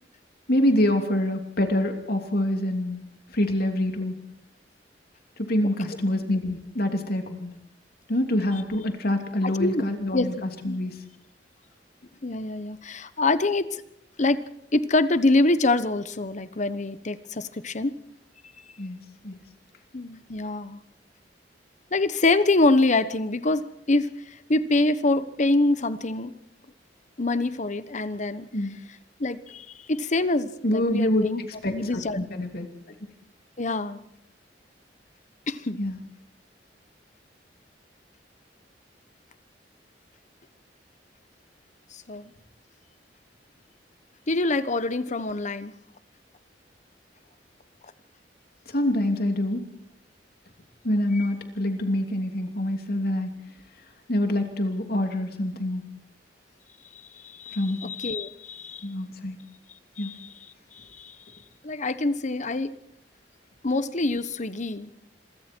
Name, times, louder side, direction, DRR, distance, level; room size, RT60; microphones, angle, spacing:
voice 1, 0.5-3.0 3.3-4.2 5.4-7.5 8.1-11.0 18.8-19.0 19.2-19.4 28.5-28.7 30.6-32.7 35.8-36.0 48.7-49.6 50.8-53.4 54.1-55.8 57.5-57.9 58.8-59.4 60.0-60.1, left 1 dB, 60° left, 4 dB, 2.9 m, -26 dB
voice 2, 9.4-9.8 10.1-10.3 12.2-13.8 14.2-14.4 14.7-17.9 19.9-20.8 21.9-26.3 27.2-28.5 29.2-31.4 31.7-32.4 33.6-34.0 35.5-35.8 41.9-42.3 44.3-45.7 51.1-51.3 57.1-58.8 60.0-60.3 60.7-61.1 61.6-62.7 63.6-64.9, left 2 dB, 45° left, 13 dB, 1.1 m, -25 dB
27.0 x 23.0 x 4.6 m, 0.76 s
head